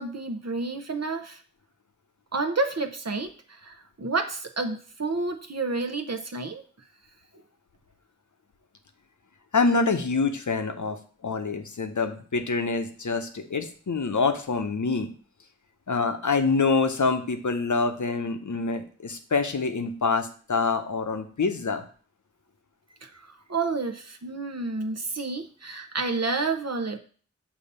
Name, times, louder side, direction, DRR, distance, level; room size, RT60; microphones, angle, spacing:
voice 1, 0.0-1.4 2.3-6.6 23.0-27.0, right 3 dB, 60° right, 5 dB, 0.7 m, -30 dB
voice 2, 9.5-11.0 11.2-15.1 15.9-21.8, left 4 dB, 85° left, 7 dB, 0.7 m, -26 dB
6.8 x 2.8 x 5.3 m, 0.42 s
wide cardioid pair, 40°, 29 cm